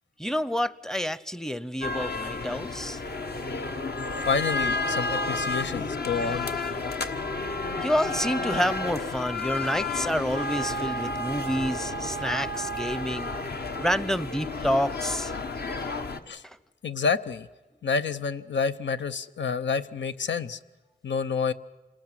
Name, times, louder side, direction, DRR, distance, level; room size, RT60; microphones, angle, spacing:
voice 1, 0.2-3.0 7.5-13.3 13.8-15.3 16.4-16.6, equal, 5° left, 17 dB, 0.7 m, -29 dB
sound 1, 1.8-16.2, left 2 dB, 60° left, 1.4 m, -31 dB
voice 2, 4.3-6.5 16.3-16.4 16.8-17.5 17.8-20.6 21.0-21.5, left 5 dB, 85° left, 12 dB, 0.8 m, -28 dB
27.0 x 19.5 x 7.5 m, 1.1 s
wide cardioid pair, 90°, 18 cm